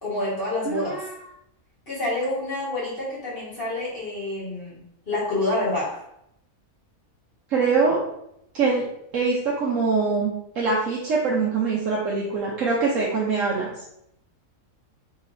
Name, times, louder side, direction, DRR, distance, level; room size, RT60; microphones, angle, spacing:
voice 1, 0.0-1.0 1.9-6.0, left 2 dB, 40° left, -8 dB, 1.8 m, -28 dB
voice 2, 0.6-1.1 7.5-8.0 8.5-8.8 9.1-13.7, right 4 dB, 65° right, -4 dB, 1.1 m, -23 dB
4.8 x 3.8 x 2.6 m, 0.76 s
omnidirectional pair, 1.5 m